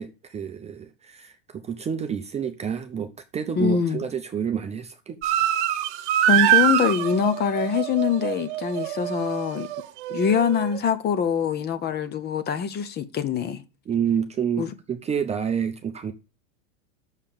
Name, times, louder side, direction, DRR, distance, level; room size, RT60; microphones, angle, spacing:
voice 1, 0.0-5.2 13.9-16.1, right 7 dB, 15° right, 0.6 m, -29 dB
voice 2, 3.6-4.0 6.3-9.7 10.1-13.6 14.6-14.7, left 7 dB, 25° left, 0.9 m, -24 dB
sound 1, 5.2-10.8, right 12 dB, 60° right, 1.0 m, -24 dB
6.5 x 5.5 x 6.9 m
hypercardioid pair, 120°, 38 cm